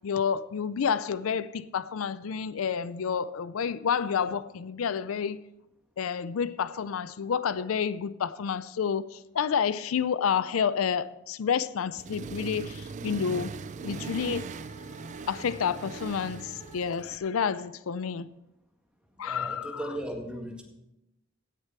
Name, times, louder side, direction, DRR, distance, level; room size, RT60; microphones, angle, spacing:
voice 1, 0.0-5.4 6.0-13.5 13.8-14.5 15.3-18.3 19.2-20.0, left 7 dB, 85° left, 0.4 m, -29 dB
Accelerating revving vroom, 11.9-17.2, right 4 dB, 35° right, 0.3 m, -40 dB
sound 1, 13.0-17.2, right 1 dB, 25° left, 2.3 m, -50 dB
voice 2, 19.2-20.6, right 1 dB, 5° right, 1.9 m, -37 dB
17.0 x 6.6 x 4.4 m
head